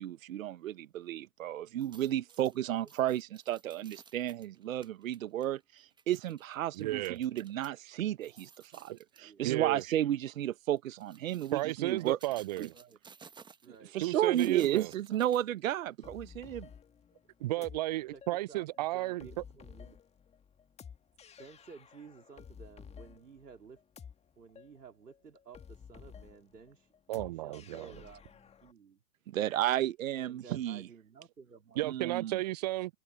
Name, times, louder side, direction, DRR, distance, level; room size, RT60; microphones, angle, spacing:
voice 1, 0.0-8.9 9.2-12.2 12.6-12.7 13.9-16.7 29.3-30.9 31.8-32.4, right 12 dB, 55° right, 1.2 m, -33 dB
sound 1, 1.7-7.7 8.1-9.3 9.8-10.0 10.8-15.9 16.3-16.4, right 6 dB, 10° right, 1.5 m, -57 dB
voice 2, 2.5-2.9 9.2-9.5 12.7-13.0 13.6-15.3 17.6-17.7 18.1-18.2 18.5-20.0 21.4-23.8 24.4-29.0 30.1-32.2, right 6 dB, 75° right, 3.5 m, -54 dB
voice 3, 6.7-7.2 8.9-9.0 9.4-9.8 11.5-12.7 14.0-14.9 17.4-19.3 27.1-27.9 31.8-32.9, right 17 dB, 25° right, 0.5 m, -33 dB
sound 2, 16.0-28.7, left 7 dB, 15° left, 2.2 m, -53 dB
figure-of-eight pair, 115°, 48 cm